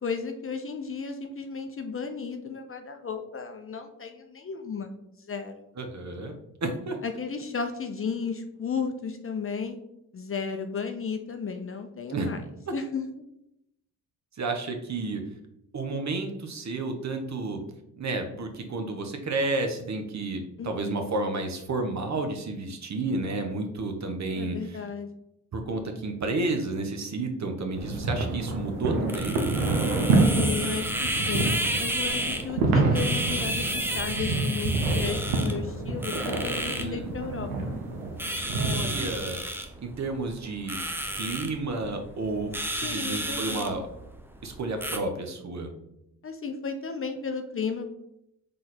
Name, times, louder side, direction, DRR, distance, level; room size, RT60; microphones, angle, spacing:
voice 1, 0.0-5.5 7.0-9.8 10.1-12.4 12.7-13.0 20.6-21.3 24.3-25.1 30.3-31.5 31.8-37.8 42.8-43.9 46.2-47.9, left 5 dB, 35° left, 6 dB, 0.6 m, -34 dB
voice 2, 5.8-6.3 6.6-7.0 12.1-12.3 14.4-15.2 15.7-17.6 18.0-24.8 25.5-29.4 36.8-37.1 38.5-39.4 39.8-40.8 41.1-43.9 44.4-45.7, right 3 dB, 40° right, 5 dB, 1.0 m, -31 dB
sound 1, 27.7-39.1, right 2 dB, 90° right, 0.7 m, -27 dB
sound 2, 27.8-45.0, right 1 dB, 5° right, 0.7 m, -33 dB
3.8 x 3.3 x 4.2 m, 0.82 s
hypercardioid pair, 45°, 40 cm